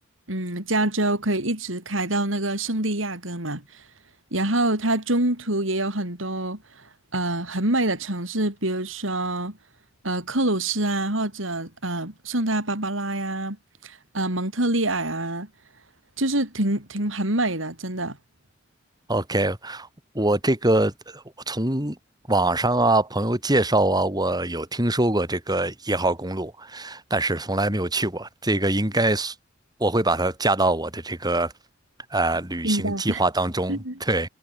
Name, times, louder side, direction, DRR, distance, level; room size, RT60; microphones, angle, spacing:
voice 1, 0.3-3.6 4.3-6.6 7.1-9.5 10.0-13.6 13.8-15.5 16.2-18.2 32.6-33.2 33.7-34.0, right 1 dB, 85° right, 7.0 m, -26 dB
voice 2, 19.1-19.9 20.1-22.0 22.3-29.3 29.8-31.5 32.1-34.3, right 2 dB, 20° right, 6.6 m, -23 dB
head